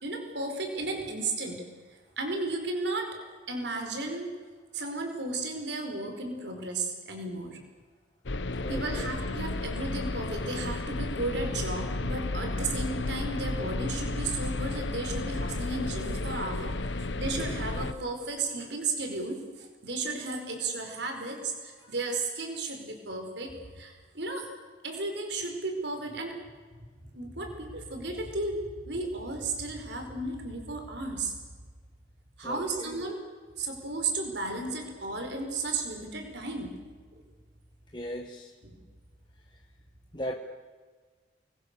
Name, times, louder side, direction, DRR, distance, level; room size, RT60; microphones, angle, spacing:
voice 1, 0.0-1.6 2.2-3.2 3.5-4.3 4.7-7.6 8.7-24.5 24.8-26.4 27.1-31.3 32.4-33.2 33.6-36.7 37.1-37.2 38.6-38.8, right 2 dB, 70° right, 4 dB, 4.8 m, -34 dB
sound 1, 8.3-17.9, left 2 dB, 80° left, 1.1 m, -33 dB
voice 2, 8.6-9.1 32.4-33.0 37.9-38.5 40.1-40.3, equal, 25° left, 1 dB, 1.5 m, -37 dB
28.5 x 22.0 x 6.9 m, 1.5 s
head